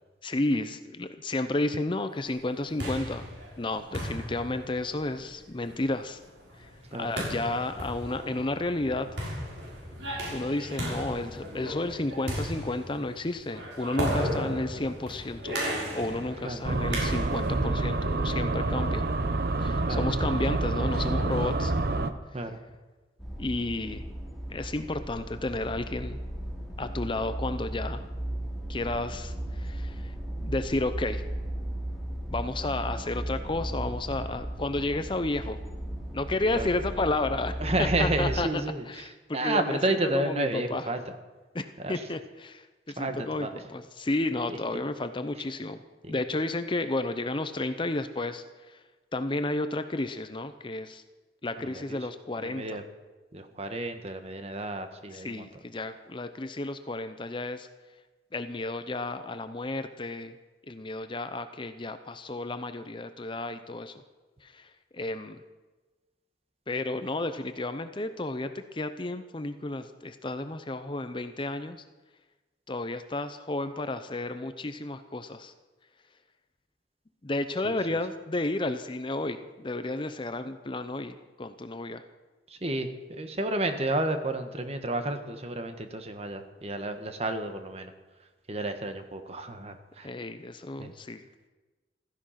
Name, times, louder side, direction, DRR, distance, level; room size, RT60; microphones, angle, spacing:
voice 1, 0.2-3.2 3.6-6.2 7.0-9.1 10.3-15.6 15.9-19.0 19.6-21.7 23.4-24.0 24.5-26.2 26.8-28.0 28.7-31.2 32.3-35.6 36.1-40.9 41.5-45.8 46.1-48.8 49.1-51.0 51.4-52.8 55.1-57.7 58.3-60.4 60.7-63.9 64.4-65.4 66.7-71.8 72.7-75.5 77.2-82.0 90.0-91.2, left 2 dB, 25° left, 10 dB, 0.7 m, -32 dB
sound 1, 2.4-17.6, equal, 85° right, 6.3 m, -36 dB
sound 2, 16.6-22.1, right 2 dB, 55° right, 0.9 m, -27 dB
sound 3, 23.2-38.4, right 1 dB, ahead, 3.1 m, -36 dB
voice 2, 37.6-39.1 39.3-41.1 41.8-42.0 43.0-43.6 44.5-44.8 46.0-46.2 51.6-52.0 52.4-52.8 53.3-55.5 77.6-77.8 82.5-87.9 88.5-90.1 90.8-90.9, right 2 dB, 35° right, 7 dB, 1.4 m, -31 dB
15.5 x 14.5 x 5.8 m, 1.2 s
head